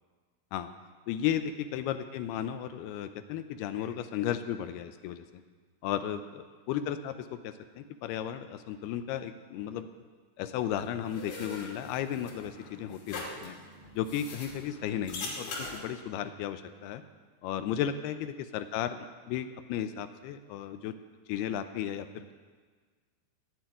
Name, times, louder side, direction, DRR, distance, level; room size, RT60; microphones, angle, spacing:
voice 1, 1.1-5.4 5.8-9.9 10.4-13.5 13.9-17.0 17.4-21.0 21.3-22.3, left 10 dB, 80° left, 10 dB, 2.6 m, -34 dB
sound 1, 10.8-15.8, left 3 dB, 60° left, 4.1 m, -42 dB
18.5 x 7.4 x 9.0 m, 1.5 s
omnidirectional pair, 4.7 m